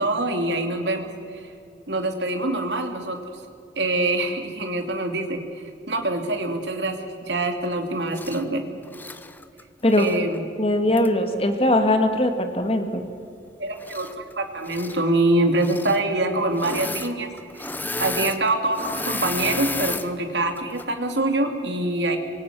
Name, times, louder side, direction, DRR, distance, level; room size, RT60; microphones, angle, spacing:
voice 1, 0.0-1.5 1.9-3.2 3.8-7.0 7.3-8.6 10.0-10.4 13.6-17.3 17.5-17.7 18.0-22.2, right 2 dB, 75° right, 4 dB, 2.8 m, -25 dB
Engine / Mechanisms, 8.1-8.4 8.9-10.2 11.0-11.1 13.8-14.3 14.6-15.0 15.5-16.0 16.5-17.1 17.4-20.1 20.6-20.8, left 3 dB, 10° left, 0.9 m, -32 dB
voice 2, 10.6-13.0, left 1 dB, 35° left, 6 dB, 1.9 m, -20 dB
25.5 x 23.0 x 6.2 m, 2.6 s
head